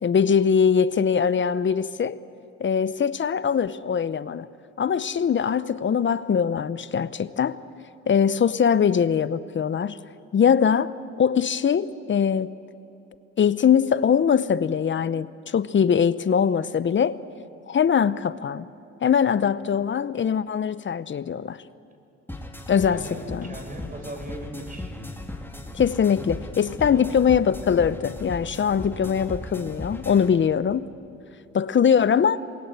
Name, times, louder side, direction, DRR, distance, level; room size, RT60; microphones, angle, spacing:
voice 1, 0.0-2.2 2.6-4.5 4.8-7.6 8.1-10.0 10.3-10.9 11.2-12.5 13.4-17.2 17.7-18.7 19.0-21.6 22.7-23.0 23.3-23.5 25.7-30.9 31.5-32.4, left 7 dB, 40° left, 0.7 m, -22 dB
sound 1, 22.3-30.3, left 1 dB, 5° left, 2.4 m, -37 dB
voice 2, 22.7-25.0 26.8-27.1, right 1 dB, 25° right, 5.0 m, -39 dB
27.5 x 21.0 x 8.1 m
cardioid pair, 90°, 30 cm